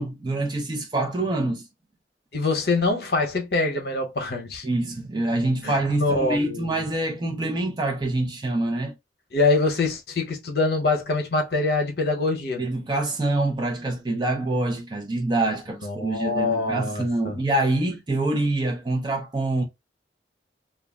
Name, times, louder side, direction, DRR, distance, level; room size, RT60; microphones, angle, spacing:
voice 1, 0.0-1.7 4.6-8.9 12.6-19.6, right 2 dB, 25° right, 0.4 m, -25 dB
voice 2, 2.3-4.6 5.6-6.8 9.3-12.6 15.8-17.4, left 3 dB, 60° left, 0.8 m, -24 dB
2.3 x 2.0 x 3.5 m
head